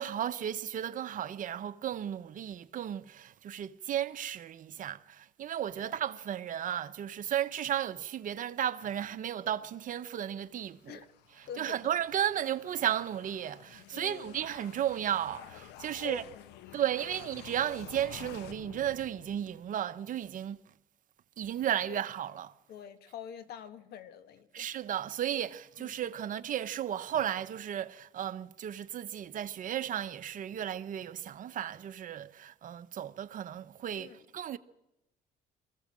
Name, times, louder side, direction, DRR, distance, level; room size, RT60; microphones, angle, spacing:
voice 1, 0.0-11.0 11.6-16.2 16.7-20.6 21.4-22.5 24.5-34.6, right 10 dB, 50° right, 1.0 m, -34 dB
sound 1, 10.4-19.8, left 11 dB, 90° left, 0.9 m, -51 dB
voice 2, 11.5-11.9 13.9-14.4 15.9-17.1 21.9-22.0 22.7-24.7 25.8-26.1 33.9-34.2, left 9 dB, 70° left, 1.6 m, -46 dB
23.0 x 15.5 x 7.5 m
cardioid pair, 110°, 17 cm